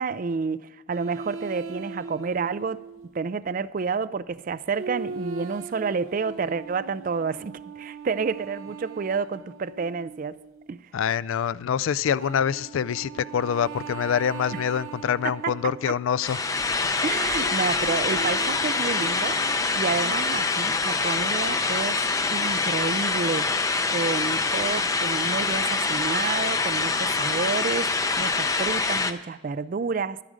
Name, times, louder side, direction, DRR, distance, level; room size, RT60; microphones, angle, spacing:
voice 1, 0.0-2.8 3.1-10.4 10.7-10.8 14.5-14.6 15.2-15.9 17.0-19.4 19.8-22.0 22.3-23.5 23.9-30.2, right 5 dB, 40° right, 0.3 m, -29 dB
sound 1, 0.9-3.1 4.8-10.8 12.2-16.2 17.1-20.2, right 4 dB, 80° right, 0.8 m, -39 dB
voice 2, 10.9-16.5 16.7-16.9, left 8 dB, 75° left, 0.3 m, -25 dB
sound 2, 16.2-29.1, left 3 dB, 15° left, 0.5 m, -25 dB
12.5 x 9.9 x 5.0 m
head